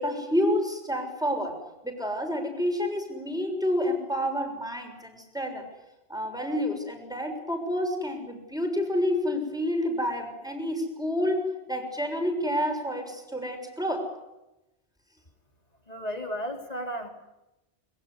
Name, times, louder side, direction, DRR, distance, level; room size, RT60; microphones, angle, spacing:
voice 1, 0.0-5.7 6.1-14.1, equal, 5° right, 3 dB, 6.6 m, -29 dB
voice 2, 15.9-17.1, equal, 35° left, 4 dB, 4.1 m, -33 dB
23.5 x 22.5 x 9.8 m, 0.95 s
omnidirectional pair, 1.1 m